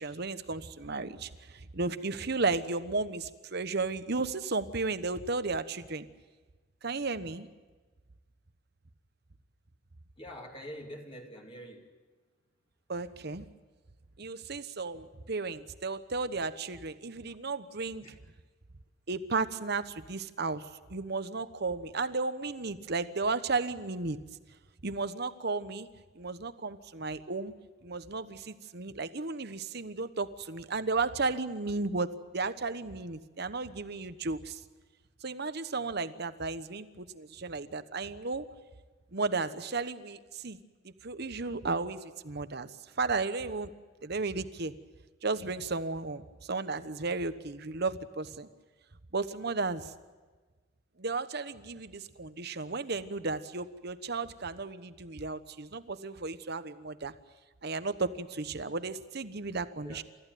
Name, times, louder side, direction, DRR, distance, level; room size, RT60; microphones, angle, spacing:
voice 1, 0.0-6.1 6.8-7.5 12.9-13.5 14.2-18.0 19.1-24.2 24.8-25.9 26.1-27.5 27.8-34.6 35.2-38.5 39.1-40.6 40.8-43.7 44.0-44.7 45.2-48.5 49.1-49.9 51.0-57.1 57.6-60.0, right 3 dB, 55° right, 12 dB, 1.1 m, -34 dB
voice 2, 10.2-11.9 17.3-17.4 18.0-18.1 59.8-60.0, equal, 30° left, 1 dB, 2.7 m, -45 dB
29.0 x 14.5 x 9.3 m, 1.3 s
head